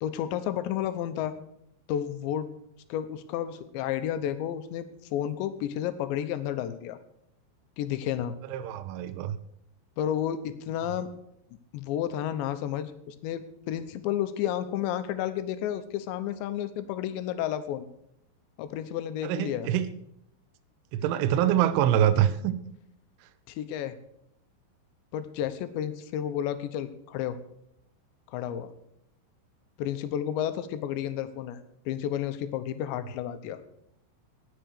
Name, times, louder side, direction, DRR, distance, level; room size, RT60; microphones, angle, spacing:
voice 1, 0.0-1.4 1.9-2.5 2.9-7.0 7.8-8.4 10.0-11.1 11.7-17.9 18.6-19.7 23.5-24.0 25.1-27.4 28.3-28.7 29.8-31.6 31.9-33.6, left 10 dB, 75° left, 11 dB, 3.0 m, -31 dB
voice 2, 8.5-9.4 19.2-19.9 20.9-22.5 23.2-23.3, right 11 dB, 80° right, 10 dB, 3.2 m, -25 dB
18.5 x 7.1 x 6.4 m, 0.75 s
omnidirectional pair, 5.7 m